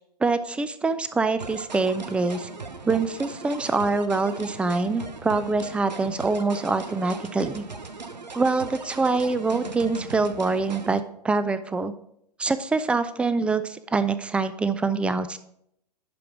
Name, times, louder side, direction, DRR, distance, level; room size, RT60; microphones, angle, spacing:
voice 1, 0.2-2.5 2.8-7.7 8.3-11.9 12.4-15.4, right 3 dB, 5° right, 13 dB, 0.4 m, -25 dB
sound 1, 1.4-11.0, right 4 dB, 85° right, 0.8 m, -39 dB
11.0 x 4.8 x 4.6 m, 0.75 s
figure-of-eight pair, 105°, 21 cm